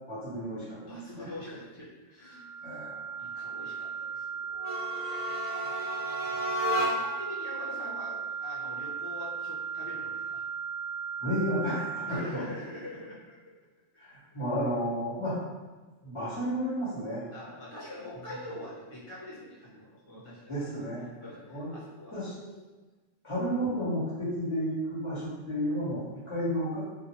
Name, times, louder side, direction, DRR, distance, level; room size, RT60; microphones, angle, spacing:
voice 1, 0.1-1.3 2.6-3.2 5.1-5.4 5.6-6.7 11.2-12.4 14.0-15.4 16.0-17.2 20.5-21.1 21.5-21.8 22.1-22.5 23.2-26.8, equal, 25° left, -11 dB, 1.4 m, -33 dB
voice 2, 0.9-2.5 3.1-4.5 5.9-10.4 12.1-13.4 14.2-14.3 17.3-20.5 21.0-22.2, left 1 dB, 45° left, -9 dB, 1.4 m, -44 dB
sound 1, 2.2-12.2, right 6 dB, 75° right, 0.9 m, -36 dB
sound 2, 4.5-7.3, equal, 15° right, 0.4 m, -32 dB
2.6 x 2.6 x 2.8 m, 1.2 s
omnidirectional pair, 1.3 m